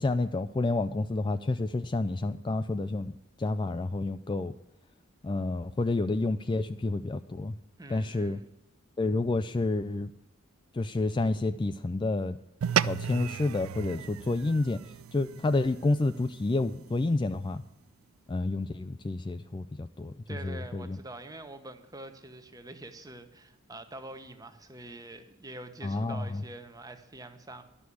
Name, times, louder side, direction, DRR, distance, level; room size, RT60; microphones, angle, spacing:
voice 1, 0.0-4.5 5.2-7.5 7.9-8.4 9.0-10.1 10.7-12.4 12.8-14.8 15.1-17.6 18.3-20.1 20.4-21.0 25.8-26.4, left 2 dB, 20° left, 10 dB, 0.3 m, -29 dB
voice 2, 7.8-8.5 20.3-27.6, right 2 dB, 15° right, 8 dB, 1.0 m, -45 dB
sound 1, 12.6-17.2, right 9 dB, 85° right, 0.4 m, -34 dB
11.5 x 6.3 x 8.3 m, 0.87 s
head